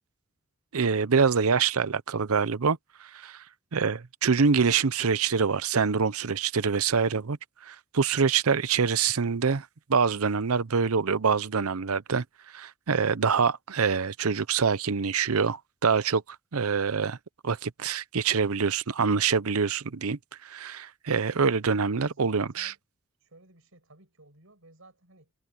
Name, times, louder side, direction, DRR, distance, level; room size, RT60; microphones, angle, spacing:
voice 1, 0.7-3.4 3.7-7.4 7.6-12.2 12.5-16.2 16.5-17.2 17.4-22.7, right 5 dB, 85° right, 0.7 m, -25 dB
voice 2, 21.9-22.8 23.2-25.3, right 2 dB, 65° right, 6.6 m, -55 dB
head